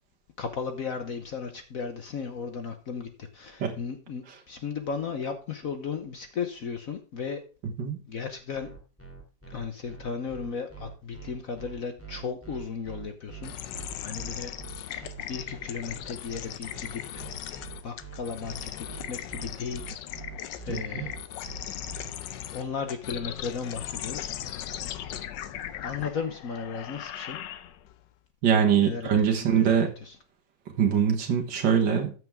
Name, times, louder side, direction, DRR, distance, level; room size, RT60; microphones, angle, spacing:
voice 1, 0.4-7.4 8.1-8.7 9.5-13.5 14.0-17.5 17.8-19.8 20.7-21.2 22.5-24.4 25.8-27.4 28.8-30.2, left 5 dB, 55° left, 7 dB, 1.2 m, -35 dB
voice 2, 7.6-8.0 20.7-21.1 28.4-29.9 30.8-32.1, right 8 dB, 75° right, 2 dB, 2.1 m, -23 dB
sound 1, 8.5-22.1, right 6 dB, 5° left, 2.9 m, -44 dB
sound 2, 13.4-28.0, left 11 dB, 80° left, 1.4 m, -38 dB
14.0 x 6.3 x 3.6 m, 0.35 s
omnidirectional pair, 2.0 m